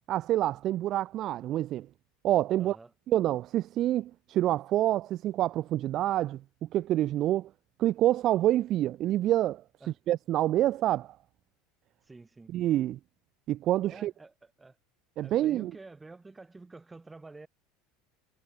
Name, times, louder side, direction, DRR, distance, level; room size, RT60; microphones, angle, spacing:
voice 1, 0.1-1.9 2.2-2.8 3.1-7.5 7.8-9.6 10.1-11.2 12.5-13.0 13.5-14.1 15.2-15.7, right 13 dB, 35° right, 0.5 m, -27 dB
voice 2, 2.6-2.9 9.8-10.0 12.0-12.6 13.9-14.8 15.2-17.5, right 3 dB, 10° right, 5.2 m, -49 dB
cardioid pair, 165°, 0 cm